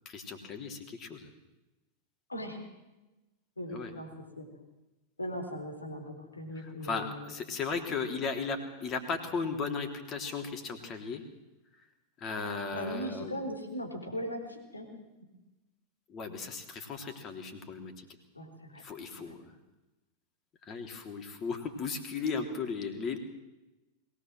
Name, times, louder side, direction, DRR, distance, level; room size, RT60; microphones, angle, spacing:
voice 1, 0.1-1.2 3.7-3.9 6.8-11.2 12.2-13.3 16.1-17.9 18.8-19.4 20.7-23.2, left 5 dB, 30° left, 6 dB, 3.4 m, -36 dB
voice 2, 2.3-2.6 3.6-4.1 4.4-4.5 5.2-7.4 12.7-15.0 18.3-18.9 19.1-19.3, equal, 80° left, 3 dB, 4.1 m, -39 dB
22.0 x 18.5 x 7.7 m, 1.0 s
figure-of-eight pair, 90°, 0 cm